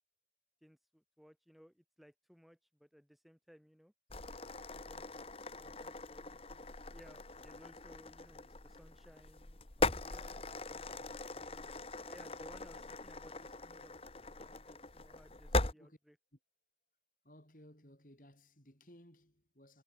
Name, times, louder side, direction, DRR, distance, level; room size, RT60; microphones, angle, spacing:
voice 1, 0.6-3.9 4.7-5.2 5.5-6.4 6.9-14.0 14.3-16.2, equal, ahead, 4.7 m, -61 dB
sound 1, 4.1-15.7, left 2 dB, 35° left, 1.4 m, -40 dB
voice 2, 11.4-11.9 15.7-16.0 17.2-19.8, equal, 50° left, 7.9 m, -60 dB
head